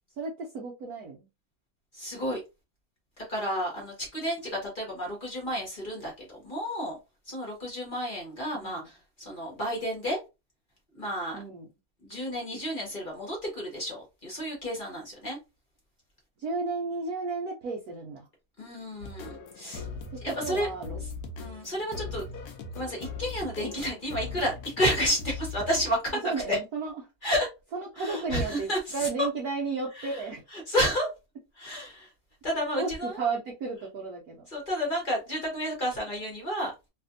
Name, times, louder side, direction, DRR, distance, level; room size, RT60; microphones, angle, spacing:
voice 1, 0.1-1.3 8.6-8.9 11.3-11.7 16.4-18.3 20.1-21.0 26.2-26.9 27.7-30.4 32.7-34.5, right 4 dB, 80° right, 0.8 m, -33 dB
voice 2, 1.9-2.4 3.2-7.0 7.3-10.2 10.9-11.4 12.0-15.4 18.6-19.9 20.2-20.7 21.4-22.2 22.7-26.6 27.2-27.5 28.0-29.1 30.0-30.2 30.5-31.1 31.6-32.1 32.4-33.2 34.5-36.7, equal, 40° left, 0.7 m, -31 dB
sound 1, 19.0-26.0, left 4 dB, 85° left, 0.8 m, -40 dB
3.3 x 2.6 x 2.5 m
omnidirectional pair, 2.4 m